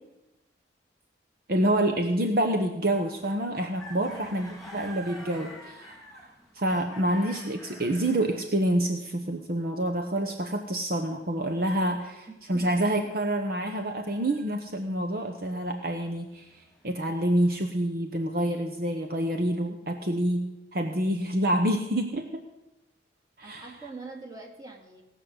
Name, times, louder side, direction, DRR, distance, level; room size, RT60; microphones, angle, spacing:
voice 1, 1.5-22.4 23.4-23.7, right 1 dB, 50° right, 5 dB, 1.0 m, -27 dB
sound 1, 2.9-8.5 12.7-14.7 15.5-17.6, equal, ahead, 2.8 m, -48 dB
voice 2, 4.0-4.3 11.9-12.7 23.4-25.0, right 3 dB, 20° right, 1 dB, 2.4 m, -44 dB
17.5 x 6.3 x 7.8 m, 0.99 s
head